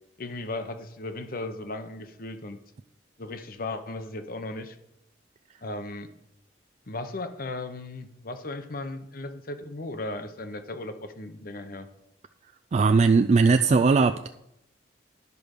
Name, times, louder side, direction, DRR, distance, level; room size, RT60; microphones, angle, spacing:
voice 1, 0.2-2.6 3.2-4.8 5.6-6.1 6.9-11.9, left 2 dB, 50° left, 9 dB, 0.9 m, -36 dB
voice 2, 12.7-14.3, right 4 dB, 35° right, 8 dB, 0.3 m, -19 dB
11.0 x 5.1 x 6.4 m, 0.82 s
head